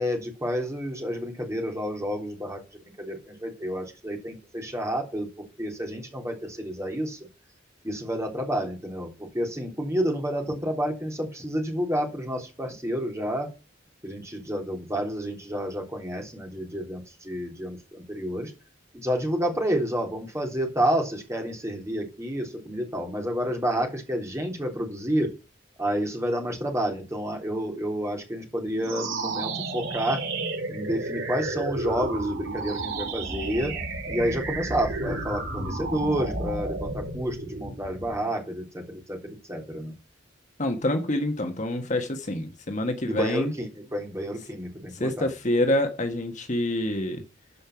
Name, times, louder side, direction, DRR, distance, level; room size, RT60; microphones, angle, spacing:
voice 1, 0.0-2.6 3.0-5.3 5.6-7.2 7.8-9.1 9.3-13.5 14.0-18.5 18.9-25.3 25.8-30.2 30.7-33.7 34.1-39.9 43.1-45.3, equal, 15° right, 3.4 m, -29 dB
sound 1, 28.8-38.3, right 3 dB, 90° right, 5.5 m, -32 dB
voice 2, 40.6-43.5 44.9-47.2, left 1 dB, 40° left, 1.4 m, -26 dB
12.5 x 5.5 x 6.0 m
head